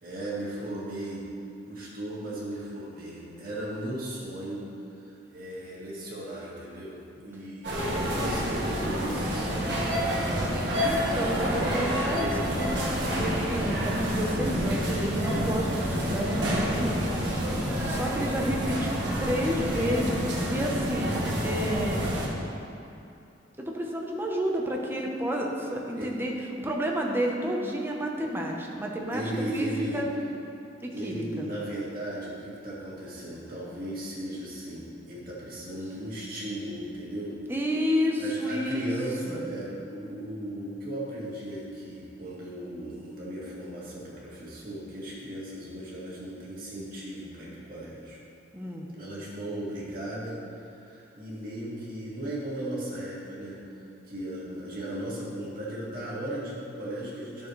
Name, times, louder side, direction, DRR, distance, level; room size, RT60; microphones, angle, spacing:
voice 1, 0.0-1.3 1.7-4.7 4.9-9.9 25.9-26.1 29.1-30.0 30.9-37.4 38.2-48.2 48.9-53.6 54.1-57.5, right 1 dB, 55° right, -7 dB, 2.1 m, -36 dB
sound 1, 7.6-22.3, equal, 70° right, 1.4 m, -28 dB
voice 2, 10.8-17.2 17.5-21.2 21.4-22.1 23.6-26.3 26.6-30.1 30.8-31.5 37.5-38.9 39.3-39.5 48.5-48.9, equal, 10° right, -1 dB, 0.8 m, -30 dB
11.0 x 6.6 x 3.2 m, 2.8 s
head